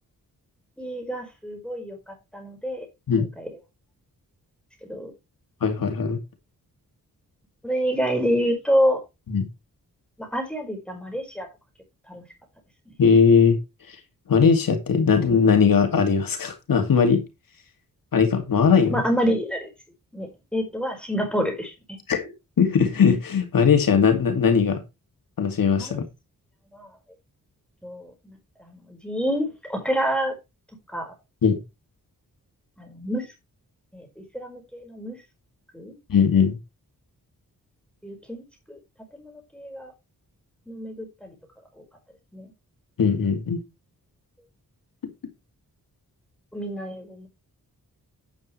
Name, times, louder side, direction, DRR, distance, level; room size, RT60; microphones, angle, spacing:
voice 1, 0.8-2.8 3.2-3.5 4.9-5.1 7.6-9.0 10.2-11.5 12.1-12.2 18.9-19.7 20.1-21.7 25.8-26.0 26.7-26.9 27.8-28.4 28.7-30.3 30.9-31.1 32.8-33.3 33.9-35.2 35.7-35.9 38.0-38.8 39.2-39.9 40.7-41.3 42.3-42.5 46.5-47.3, equal, 5° left, 4.9 m, -28 dB
voice 2, 5.6-6.2 9.3-9.5 13.0-13.6 14.3-17.2 18.1-19.0 22.1-24.8 25.4-26.0 31.4-31.6 36.1-36.6 43.0-43.6, left 6 dB, 75° left, 2.5 m, -19 dB
9.7 x 9.0 x 3.2 m
wide cardioid pair, 90°, 34 cm